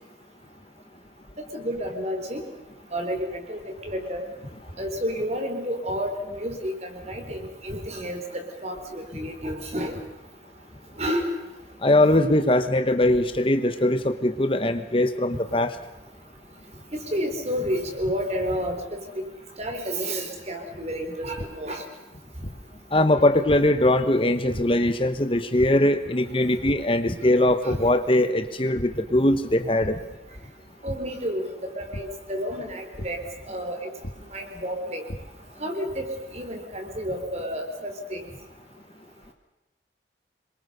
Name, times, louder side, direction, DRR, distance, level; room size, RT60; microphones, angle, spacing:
voice 1, 1.5-2.4 2.9-3.6 3.9-4.3 4.8-9.9 11.0-11.3 17.1-19.0 19.6-21.8 27.6-27.8 30.8-33.2 33.4-33.9 34.3-35.1 35.6-38.2, equal, 40° right, 5 dB, 4.3 m, -30 dB
voice 2, 11.8-15.7 22.9-30.0, left 1 dB, 30° left, 9 dB, 1.1 m, -21 dB
sound 1, 21.4-21.5 22.4-22.5 23.5-23.6 24.5-24.6 25.6-25.7 26.6-26.7 27.2-27.4 27.7-27.8 28.7-28.8 29.8-29.9 30.9-31.0 31.9-32.0 33.0-33.1 34.0-34.1 34.8-35.2, equal, 60° left, 3.1 m, -34 dB
27.0 x 23.0 x 6.8 m, 0.99 s
head